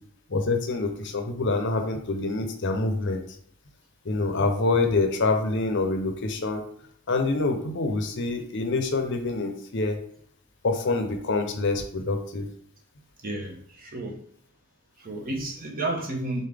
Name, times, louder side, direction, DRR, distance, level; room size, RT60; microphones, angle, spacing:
voice 1, 0.3-3.2 4.0-6.6 7.1-10.0 10.6-12.5, left 3 dB, 50° left, 6 dB, 0.6 m, -26 dB
voice 2, 13.2-14.2 15.0-16.5, right 2 dB, 40° right, 2 dB, 0.8 m, -32 dB
3.9 x 3.8 x 3.4 m, 0.64 s
head